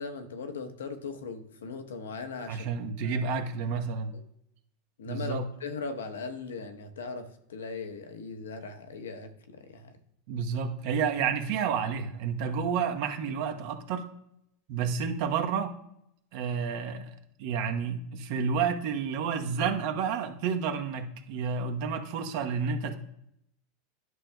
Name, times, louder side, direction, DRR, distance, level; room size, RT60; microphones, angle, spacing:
voice 1, 0.0-2.7 3.0-3.2 3.7-3.8 4.1-4.2 5.0-10.0, left 4 dB, 90° left, 7 dB, 1.0 m, -39 dB
voice 2, 2.5-4.1 5.1-5.5 10.3-14.1 14.7-15.8 16.3-17.1 17.4-23.0, right 6 dB, 65° right, 5 dB, 1.0 m, -30 dB
11.0 x 6.3 x 2.3 m, 0.78 s
hypercardioid pair, 100°, 0 cm